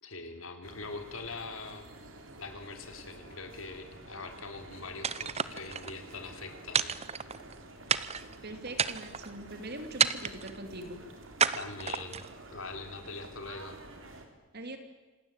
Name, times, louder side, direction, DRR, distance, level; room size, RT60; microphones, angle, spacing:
voice 1, 0.0-1.9 2.3-6.9 11.5-12.2 12.5-13.8, left 3 dB, 90° left, 6 dB, 3.5 m, -43 dB
sound 1, 0.6-14.3, right 2 dB, 70° right, 3.7 m, -50 dB
sound 2, 5.0-5.9 6.7-7.5 7.9-8.3 8.7-9.3 10.0-10.6 11.4-12.3, right 7 dB, 30° right, 0.8 m, -30 dB
voice 2, 8.4-11.0 14.5-14.8, right 1 dB, 55° right, 7 dB, 2.9 m, -42 dB
27.0 x 19.5 x 9.1 m, 1.2 s
head